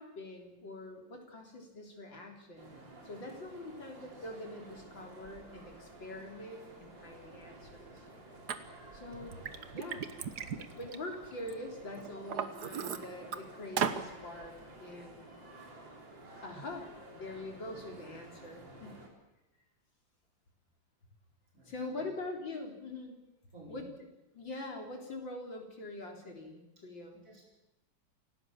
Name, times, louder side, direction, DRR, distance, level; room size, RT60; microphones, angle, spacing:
voice 1, 0.0-8.1 8.9-9.4 9.7-10.1 10.8-15.3 16.4-16.9 17.1-19.0 21.6-23.2 23.7-23.8 24.3-27.2, left 2 dB, 80° left, 2 dB, 4.4 m, -44 dB
sound 1, 2.6-19.1, right 2 dB, 75° right, 4.5 m, -52 dB
Liquid, 8.5-8.6 9.1-11.5 12.0-13.4 13.8-14.0, right 7 dB, 60° right, 1.7 m, -36 dB
voice 2, 18.6-18.9 21.5-22.1 23.5-23.9 27.1-27.4, right 2 dB, 45° right, -2 dB, 5.4 m, -54 dB
27.5 x 17.0 x 7.4 m, 0.93 s
omnidirectional pair, 2.0 m